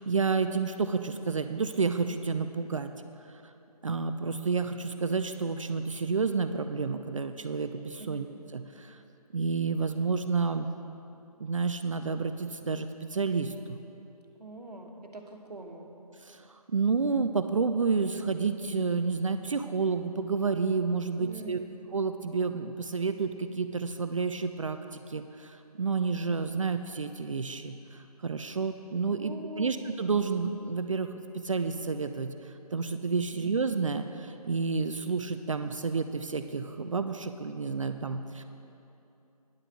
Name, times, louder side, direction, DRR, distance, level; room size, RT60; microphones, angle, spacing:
voice 1, 0.0-2.9 3.8-8.3 8.5-9.0 9.3-10.7 11.4-13.8 16.3-21.6 21.9-38.4, right 4 dB, 55° right, 9 dB, 0.4 m, -30 dB
voice 2, 14.4-15.9 21.2-21.7 29.1-29.8 33.3-33.5, right 2 dB, 85° right, 3 dB, 1.3 m, -43 dB
9.9 x 6.6 x 6.1 m, 2.9 s
figure-of-eight pair, 150°, 20 cm